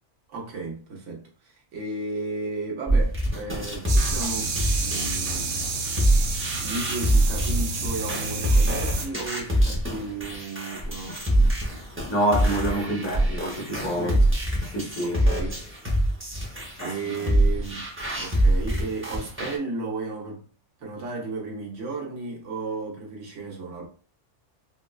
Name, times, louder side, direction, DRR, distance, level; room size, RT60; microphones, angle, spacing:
voice 1, 0.3-5.7 6.6-11.6 12.8-13.3 14.0-14.3 15.0-15.6 16.8-17.8 18.1-20.4 20.8-23.9, right 3 dB, 90° right, 1.3 m, -34 dB
sound 1, 2.9-19.6, right 1 dB, 15° right, 0.6 m, -24 dB
sound 2, 3.9-9.1, right 4 dB, 60° right, 0.6 m, -30 dB
voice 2, 12.1-14.2 14.7-15.2 16.8-17.4, right 1 dB, 75° left, 1.5 m, -27 dB
4.1 x 2.1 x 2.3 m
omnidirectional pair, 1.2 m